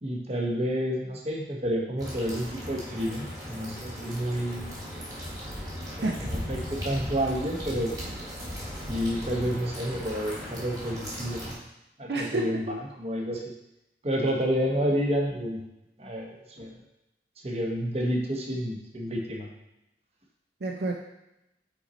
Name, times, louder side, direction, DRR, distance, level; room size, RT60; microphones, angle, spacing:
voice 1, 0.0-4.8 5.9-7.9 8.9-11.5 12.0-13.4 14.0-15.6 16.0-16.7 17.4-19.5, equal, 35° right, 0 dB, 0.9 m, -30 dB
sound 1, 2.0-11.5, equal, 20° right, 1.5 m, -37 dB
voice 2, 12.1-12.8 20.6-20.9, right 2 dB, 65° right, 1 dB, 0.6 m, -29 dB
5.7 x 4.2 x 4.1 m, 0.87 s
head